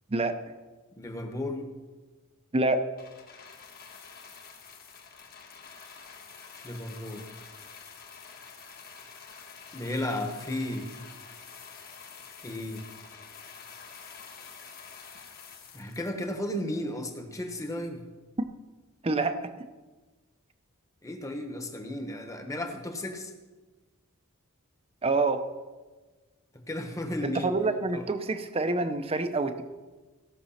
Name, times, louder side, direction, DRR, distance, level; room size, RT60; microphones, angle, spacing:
voice 1, 1.0-1.7 6.6-7.3 9.7-10.9 12.4-12.8 15.7-18.0 21.0-23.3 26.5-27.6 27.9-28.0, left 1 dB, 15° left, 5 dB, 1.1 m, -34 dB
voice 2, 2.5-2.9 19.0-19.5 25.0-25.4 27.2-29.6, right 3 dB, 25° right, 9 dB, 0.6 m, -27 dB
sound 1, 3.0-16.6 17.4-17.5, left 6 dB, 45° left, 1.5 m, -48 dB
16.5 x 6.1 x 5.7 m, 1.3 s
head